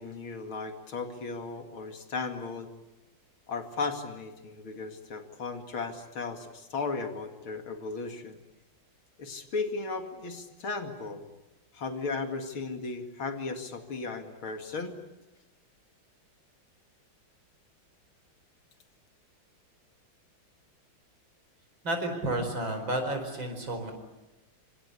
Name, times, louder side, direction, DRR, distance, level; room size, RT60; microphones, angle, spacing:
voice 1, 0.0-2.7 3.5-8.4 9.2-11.2 11.7-15.0, left 4 dB, 80° left, 5 dB, 3.1 m, -36 dB
voice 2, 21.8-23.9, right 1 dB, 65° right, 6 dB, 5.5 m, -31 dB
26.5 x 25.5 x 8.3 m, 1.0 s
omnidirectional pair, 2.3 m